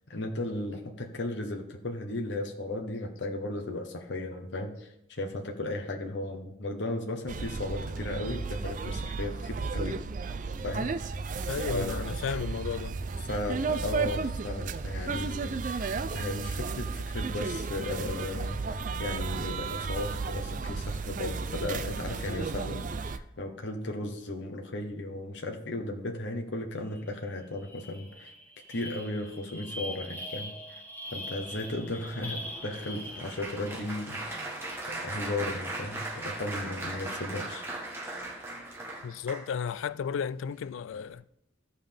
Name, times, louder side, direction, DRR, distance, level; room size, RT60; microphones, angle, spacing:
voice 1, 0.1-10.0 10.6-11.2 11.7-12.2 13.3-28.3 28.7-30.5 31.1-34.6 34.9-37.7, left 2 dB, 70° left, 1.0 m, -35 dB
sound 1, 7.3-23.2, right 4 dB, 40° right, 0.4 m, -33 dB
voice 2, 11.5-13.0 39.0-41.2, left 7 dB, 90° left, 0.3 m, -33 dB
sound 2, 26.9-27.1 27.4-33.8, left 1 dB, 10° left, 1.2 m, -42 dB
Applause, 31.5-39.8 40.4-40.7 40.9-41.1, right 2 dB, 15° right, 1.2 m, -39 dB
14.5 x 5.6 x 3.5 m
head